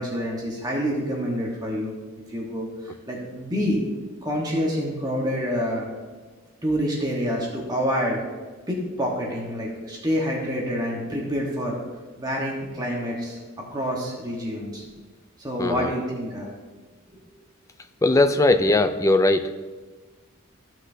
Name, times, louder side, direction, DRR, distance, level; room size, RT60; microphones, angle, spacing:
voice 1, 0.0-1.9 2.3-2.7 3.1-3.8 4.2-5.9 6.6-8.2 8.7-11.8 12.2-13.4 13.7-14.9 15.4-16.5 17.1-17.2, equal, 20° right, -2 dB, 1.2 m, -27 dB
voice 2, 15.6-15.9 18.0-19.4, left 2 dB, 15° left, 9 dB, 0.4 m, -19 dB
14.0 x 6.1 x 2.7 m, 1.3 s
head